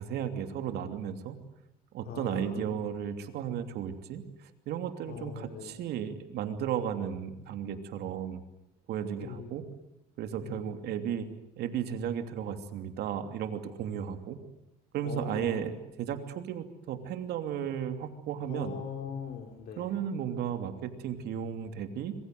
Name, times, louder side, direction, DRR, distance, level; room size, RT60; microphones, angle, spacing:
voice 1, 0.0-1.4 1.9-8.4 8.9-9.6 10.2-11.3 11.6-14.4 14.9-18.7 19.8-22.2, right 9 dB, 75° right, 7 dB, 2.9 m, -34 dB
voice 2, 2.0-2.9 5.1-5.8 9.2-9.5 10.4-10.7 15.0-15.7 18.5-20.1, left 7 dB, 65° left, 2 dB, 4.1 m, -41 dB
26.0 x 23.0 x 7.8 m, 0.88 s
cardioid pair, 110°, 17 cm